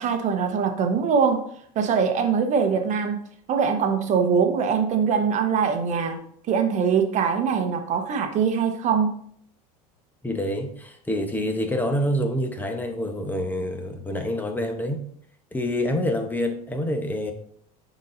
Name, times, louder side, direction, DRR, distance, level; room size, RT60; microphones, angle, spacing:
voice 1, 0.0-1.4 1.7-3.2 3.5-6.2 6.5-9.1, right 6 dB, 40° right, 6 dB, 1.0 m, -22 dB
voice 2, 10.2-15.0 15.5-17.3, left 1 dB, 10° left, 5 dB, 0.9 m, -27 dB
9.7 x 4.1 x 2.6 m, 0.64 s
supercardioid pair, 120°, 18 cm